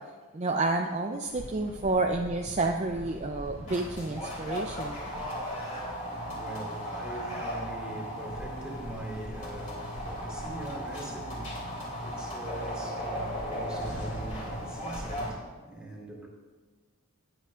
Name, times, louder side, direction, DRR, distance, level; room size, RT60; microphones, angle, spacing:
voice 1, 0.3-5.0, right 2 dB, 30° right, 3 dB, 0.5 m, -29 dB
sound 1, 1.3-15.3, equal, 35° left, 3.2 m, -37 dB
voice 2, 5.5-16.3, right 1 dB, 5° right, -4 dB, 2.7 m, -42 dB
20.0 x 8.0 x 2.5 m, 1.4 s
head